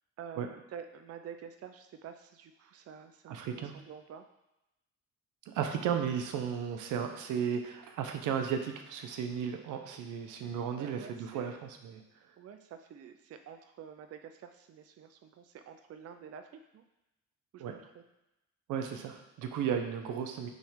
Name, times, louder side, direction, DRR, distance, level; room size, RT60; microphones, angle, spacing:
voice 1, 0.2-4.2 10.8-11.5 12.4-16.8 17.5-18.0, right 7 dB, 50° right, 7 dB, 0.5 m, -48 dB
voice 2, 3.3-3.7 5.5-12.0 17.6-17.8 18.7-20.5, right 7 dB, 90° right, 5 dB, 0.8 m, -34 dB
6.2 x 3.3 x 5.0 m, 0.93 s
cardioid pair, 90°, 30 cm